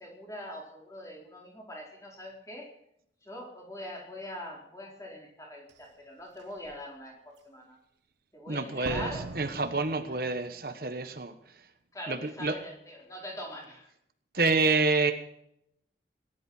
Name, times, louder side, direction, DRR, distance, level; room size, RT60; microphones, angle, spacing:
voice 1, 0.0-2.8 3.2-7.8 8.3-9.3 11.9-13.9, equal, 20° left, -1 dB, 4.4 m, -43 dB
Slam, 5.7-5.8 6.4-6.8 8.8-10.7 11.0-11.1, right 3 dB, 90° right, 0.7 m, -41 dB
voice 2, 8.5-11.6 12.1-12.5 14.3-15.1, right 3 dB, 55° right, 7 dB, 1.3 m, -28 dB
18.5 x 11.5 x 5.6 m, 0.75 s
head